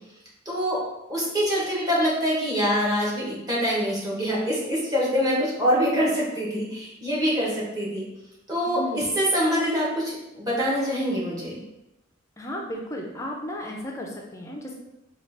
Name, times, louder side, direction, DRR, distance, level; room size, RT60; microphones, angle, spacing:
voice 1, 0.4-0.8 1.1-8.0 8.5-11.6, equal, 20° right, -5 dB, 1.0 m, -25 dB
voice 2, 8.6-9.1 12.4-14.7, equal, 15° left, 0 dB, 0.4 m, -34 dB
4.2 x 2.3 x 3.3 m, 0.93 s
head